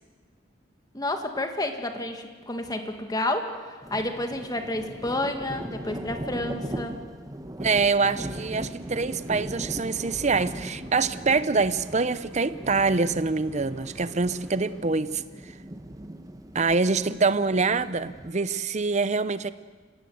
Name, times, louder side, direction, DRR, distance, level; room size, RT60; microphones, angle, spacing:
voice 1, 0.9-3.5 3.9-7.0, left 1 dB, 20° left, 5 dB, 2.0 m, -30 dB
sound 1, 3.8-18.3, right 1 dB, 20° right, 1.0 m, -39 dB
sound 2, 7.5-15.2, equal, 5° left, 5.6 m, -50 dB
voice 2, 7.6-15.5 16.5-19.5, right 4 dB, 40° right, 14 dB, 0.8 m, -25 dB
26.0 x 17.5 x 8.0 m, 1.4 s
head